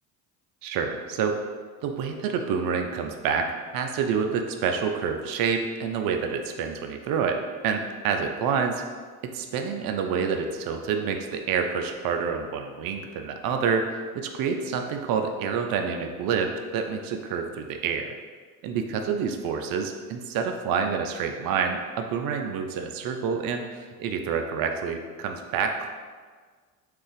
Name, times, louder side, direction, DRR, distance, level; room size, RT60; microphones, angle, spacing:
voice 1, 0.6-1.4 1.8-8.8 9.2-18.1 18.6-25.9, right 6 dB, 55° right, 4 dB, 0.5 m, -28 dB
2.5 x 2.4 x 3.9 m, 1.5 s
hypercardioid pair, 70°, 42 cm